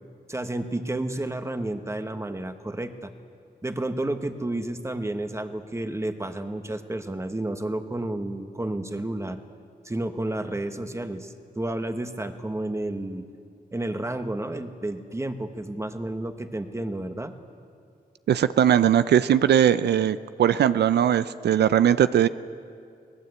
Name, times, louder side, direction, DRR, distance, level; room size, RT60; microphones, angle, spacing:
voice 1, 0.3-3.1 3.6-9.4 9.8-13.3 13.7-17.3, right 1 dB, 15° right, 7 dB, 1.4 m, -31 dB
voice 2, 18.3-22.3, right 9 dB, 90° right, 14 dB, 0.5 m, -20 dB
24.0 x 18.5 x 8.1 m, 2.4 s
cardioid pair, 90°, 17 cm